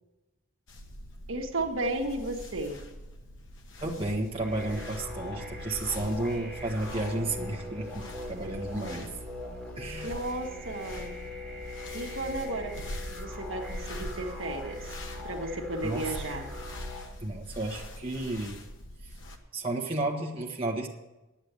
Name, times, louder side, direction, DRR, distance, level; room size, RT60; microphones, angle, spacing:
sound 1, 0.7-19.4, left 1 dB, 65° left, 1.3 m, -44 dB
voice 1, 1.3-2.8 10.0-11.2 11.9-15.0 15.2-16.5, right 2 dB, 70° right, 2 dB, 1.4 m, -34 dB
voice 2, 3.8-9.2 9.8-10.1 15.8-16.0 17.2-18.6 19.0-19.2 19.5-20.9, right 2 dB, 25° right, 0 dB, 1.4 m, -32 dB
sound 2, 4.4-17.1, left 1 dB, 10° left, 3.2 m, -41 dB
10.0 x 8.8 x 8.0 m, 1.0 s
head